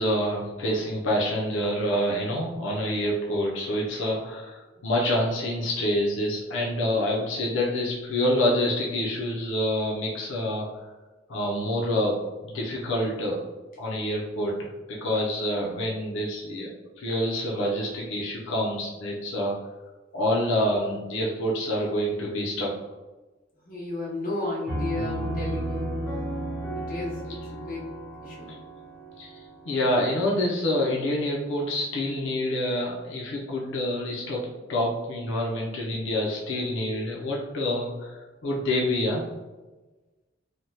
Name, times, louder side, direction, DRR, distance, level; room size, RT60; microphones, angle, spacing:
voice 1, 0.0-10.8 11.3-13.4 13.8-14.5 14.9-16.7 17.0-19.5 20.1-22.7 29.2-39.2, left 1 dB, 90° left, -3 dB, 0.5 m, -27 dB
voice 2, 23.6-26.2 26.6-28.0 28.2-28.6, left 2 dB, 45° left, -4 dB, 0.8 m, -34 dB
Piano, 24.7-30.2, right 1 dB, 5° left, 0.9 m, -33 dB
3.3 x 2.1 x 2.7 m, 1.2 s
head